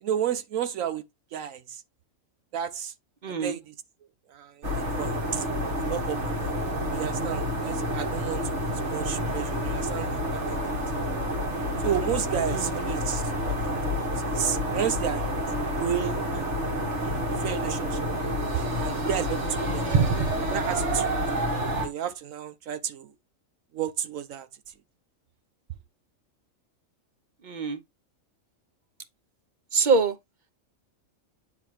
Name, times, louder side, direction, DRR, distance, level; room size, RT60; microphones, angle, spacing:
voice 1, 0.0-1.0 1.3-1.8 2.5-2.9 3.4-3.7 4.3-5.5 5.8-6.6 6.9-10.8 11.8-15.2 15.8-16.6 17.0-18.2 18.5-19.9 20.5-21.1 21.8-23.1 23.7-24.5, right 9 dB, 80° right, 1.1 m, -32 dB
voice 2, 3.2-3.6 12.5-12.8 19.9-20.3 27.4-27.8 29.7-30.2, right 5 dB, 40° right, 0.8 m, -24 dB
sound 1, 4.6-21.9, equal, 60° right, 2.2 m, -29 dB
9.4 x 3.9 x 3.1 m
omnidirectional pair, 1.4 m